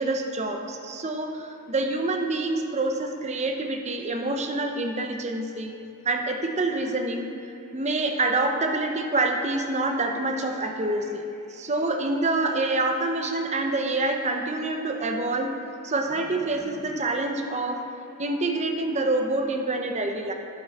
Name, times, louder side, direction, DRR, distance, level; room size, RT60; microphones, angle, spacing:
voice 1, 0.0-5.7 6.0-7.3 7.7-11.2 11.5-15.5 15.8-17.8 18.2-20.3, right 2 dB, 30° right, 3 dB, 0.8 m, -26 dB
11.5 x 7.5 x 4.2 m, 2.7 s
head